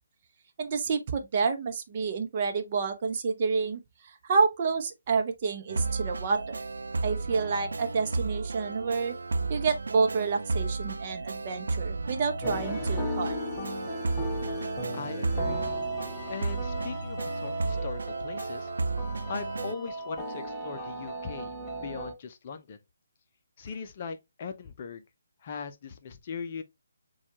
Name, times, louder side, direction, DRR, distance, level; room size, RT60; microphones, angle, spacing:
voice 1, 0.6-6.6 7.0-9.1 9.5-13.4, right 5 dB, 35° right, 0.7 m, -29 dB
sound 1, 5.7-19.7, right 3 dB, 60° right, 0.4 m, -33 dB
sound 2, 12.4-22.1, equal, 10° left, 1.0 m, -36 dB
voice 2, 14.9-15.7 16.3-18.7 19.3-22.8 23.6-25.0 25.4-26.6, left 5 dB, 35° left, 0.6 m, -39 dB
7.1 x 2.4 x 2.9 m
figure-of-eight pair, 145°, 0 cm